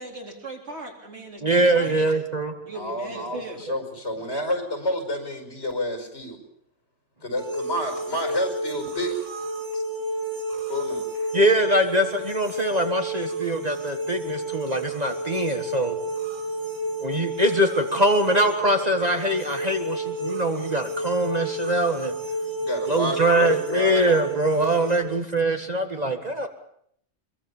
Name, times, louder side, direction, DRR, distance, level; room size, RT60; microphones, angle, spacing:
voice 1, 0.0-2.1 2.6-3.6, right 2 dB, 65° right, 1 dB, 4.4 m, -38 dB
voice 2, 1.4-2.5 3.3-3.4 11.3-16.0 17.0-22.1 22.9-26.5, right 1 dB, 35° right, 5 dB, 1.7 m, -23 dB
voice 3, 2.7-6.4 7.2-9.2 9.7-9.8 10.7-11.3 22.6-24.1 24.8-24.9, left 1 dB, 65° left, 5 dB, 5.5 m, -29 dB
sound 1, 7.4-25.0, right 1 dB, 85° right, 2.4 m, -31 dB
24.0 x 22.5 x 7.1 m, 0.68 s
omnidirectional pair, 1.2 m